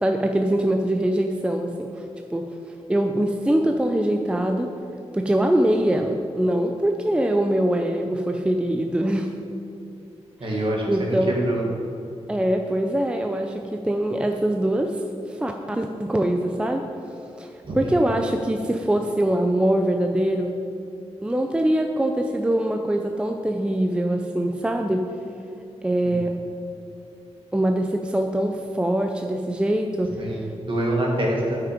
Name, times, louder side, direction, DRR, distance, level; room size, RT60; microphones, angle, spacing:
voice 1, 0.0-1.9 2.3-2.5 2.9-4.7 5.1-9.3 10.4-11.3 12.3-15.0 15.3-16.8 17.4-17.5 17.7-20.5 21.2-25.0 25.8-26.4 27.5-30.3, right 1 dB, 10° right, 4 dB, 0.4 m, -23 dB
voice 2, 10.4-11.6 17.7-18.0 30.2-31.6, right 1 dB, 50° right, -2 dB, 1.8 m, -25 dB
9.3 x 5.9 x 5.1 m, 2.6 s
wide cardioid pair, 125°, 11 cm